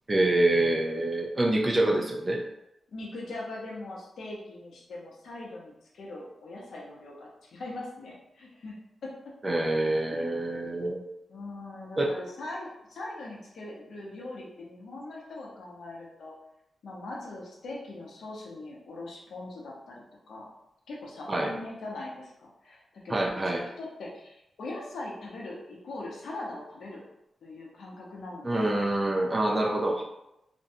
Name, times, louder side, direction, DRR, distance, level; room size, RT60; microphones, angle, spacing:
voice 1, 0.1-2.4 9.4-11.0 12.0-12.1 21.3-21.5 23.1-23.6 28.4-30.0, right 1 dB, 25° right, 1 dB, 0.3 m, -26 dB
voice 2, 2.9-8.7 9.0-9.1 10.1-10.3 11.3-16.3 16.8-20.5 20.9-27.0 27.4-28.7, left 2 dB, 80° left, -3 dB, 0.6 m, -41 dB
2.5 x 2.1 x 2.6 m, 0.85 s
wide cardioid pair, 140°, 0 cm